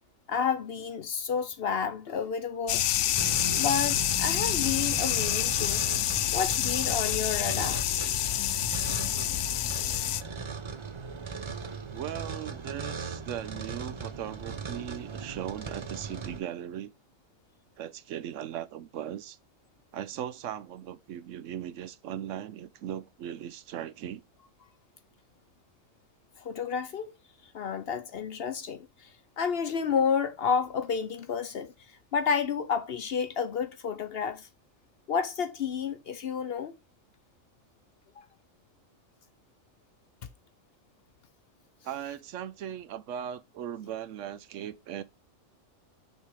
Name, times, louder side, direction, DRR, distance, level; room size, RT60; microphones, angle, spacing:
voice 1, 0.3-2.8 3.5-5.8 6.3-7.8 26.4-27.1 27.5-29.1 29.4-31.7 32.1-34.5 35.1-36.7 38.2-38.3, left 6 dB, 55° left, 0.8 m, -30 dB
sound 1, 2.7-10.2, left 12 dB, 80° left, 1.0 m, -28 dB
sound 2, 3.1-16.4, right 4 dB, 40° right, 0.4 m, -38 dB
voice 2, 11.9-16.9 17.8-19.4 19.9-24.2 41.8-45.0, right 10 dB, 70° right, 0.9 m, -38 dB
6.5 x 3.6 x 4.6 m
omnidirectional pair, 1.4 m